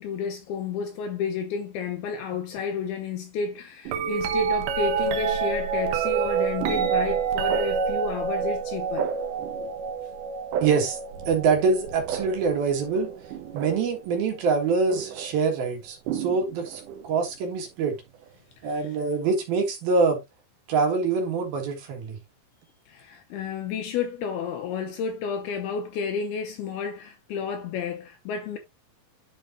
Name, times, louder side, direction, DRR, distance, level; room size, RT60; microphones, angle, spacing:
voice 1, 0.0-9.1 18.7-18.9 22.9-28.6, left 6 dB, 75° left, 2.4 m, -31 dB
sound 1, 3.9-14.0 14.9-15.3 16.1-17.1 18.8-18.9, right 6 dB, 80° right, 1.8 m, -28 dB
voice 2, 10.6-11.0 11.3-13.1 13.5-18.0 18.6-20.2 20.7-22.2, right 4 dB, 60° right, 3.2 m, -25 dB
11.0 x 5.2 x 2.6 m
omnidirectional pair, 5.2 m